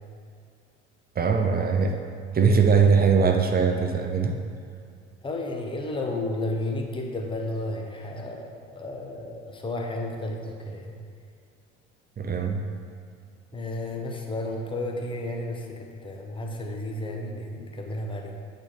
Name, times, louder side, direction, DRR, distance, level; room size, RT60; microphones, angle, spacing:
voice 1, 1.2-1.9 2.3-4.4 12.2-12.6, right 5 dB, 25° right, 4 dB, 0.6 m, -21 dB
voice 2, 5.2-11.0 13.5-18.4, left 1 dB, 15° left, 1 dB, 0.8 m, -32 dB
8.5 x 4.2 x 3.2 m, 2.2 s
hypercardioid pair, 70°, 36 cm